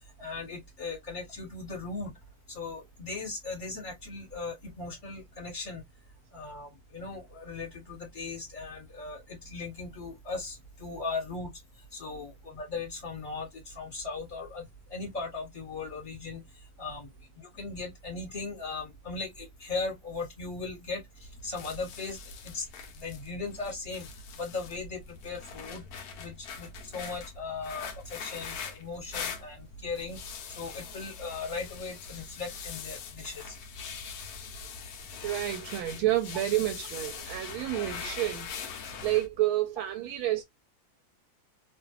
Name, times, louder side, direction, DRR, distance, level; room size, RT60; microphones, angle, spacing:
voice 1, 0.2-2.1 2.5-5.8 6.3-11.5 11.9-14.6 14.9-16.4 16.8-17.1 17.4-21.0 21.4-22.2 22.4-22.6 23.0-24.1 24.4-25.8 26.2-30.2 30.5-33.5, left 3 dB, 25° left, 1.4 m, -38 dB
sound 1, 21.2-39.3, left 6 dB, 75° left, 0.8 m, -42 dB
voice 2, 35.2-38.5 38.8-40.4, right 14 dB, 90° right, 1.4 m, -29 dB
3.0 x 2.5 x 2.3 m
omnidirectional pair, 2.2 m